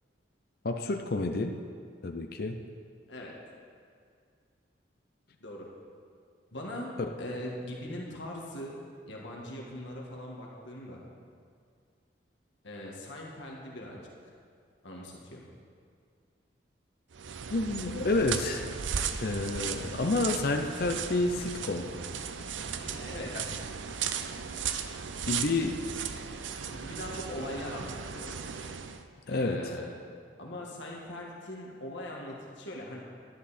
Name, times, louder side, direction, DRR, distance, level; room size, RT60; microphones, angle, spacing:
voice 1, 0.6-1.6 2.0-2.6 7.0-7.1 17.5-18.6 19.2-21.9 23.3-23.4 25.3-25.8 29.3-29.6, left 2 dB, 55° left, 5 dB, 0.6 m, -29 dB
voice 2, 6.5-6.9 7.2-8.8 9.1-11.0 12.6-14.0 14.8-15.4 22.7-23.5 26.6-28.4 29.3-29.9 30.4-33.0, left 1 dB, 75° left, -2 dB, 1.7 m, -40 dB
sound 1, 17.1-29.0, right 7 dB, 85° right, 0.6 m, -36 dB
11.0 x 11.0 x 4.2 m, 2.2 s
head